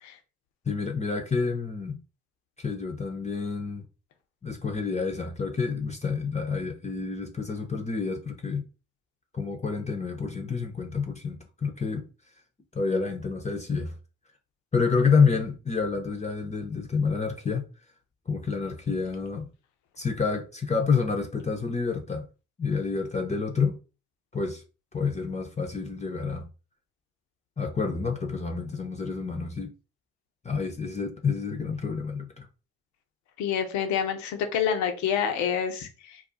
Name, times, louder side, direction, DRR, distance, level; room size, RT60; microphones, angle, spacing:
voice 1, 0.7-2.0 2.6-3.8 4.4-8.7 9.3-12.0 12.7-14.0 14.7-17.6 18.3-19.5 20.0-22.2 22.6-23.8 24.3-24.6 24.9-26.5 27.6-29.7 30.4-32.5, left 5 dB, 25° left, 0.7 m, -28 dB
voice 2, 33.4-36.2, left 8 dB, 70° left, 0.7 m, -27 dB
2.4 x 2.3 x 3.8 m
hypercardioid pair, 45°, 30 cm